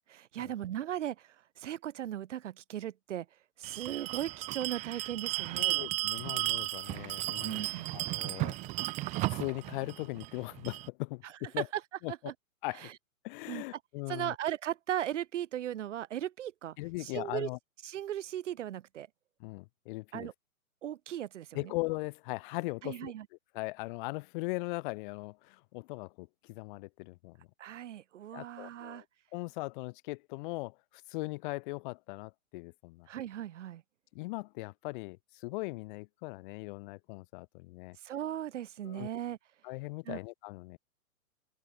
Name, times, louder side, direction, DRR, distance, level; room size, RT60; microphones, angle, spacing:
voice 1, 0.0-3.3 3.6-5.9 7.4-8.0 11.2-11.8 12.1-12.3 12.8-12.9 13.5-13.6 14.1-17.5 17.8-19.1 20.1-20.3 20.8-21.7 22.8-23.3 27.6-29.0 33.1-33.8 38.0-39.4 40.1-40.2, right 11 dB, 55° right, 3.9 m, -37 dB
Bell, 3.6-10.9, right 20 dB, 15° right, 0.8 m, -35 dB
voice 2, 5.6-7.7 7.9-8.5 9.3-11.7 12.0-12.1 12.6-12.9 13.2-14.3 16.8-17.6 19.4-20.3 21.5-23.1 23.5-27.5 28.3-29.1 29.3-30.8 31.1-33.1 34.1-38.0 38.8-39.1 39.6-40.8, left 24 dB, 35° left, 3.6 m, -39 dB
open air
hypercardioid pair, 140°, 43 cm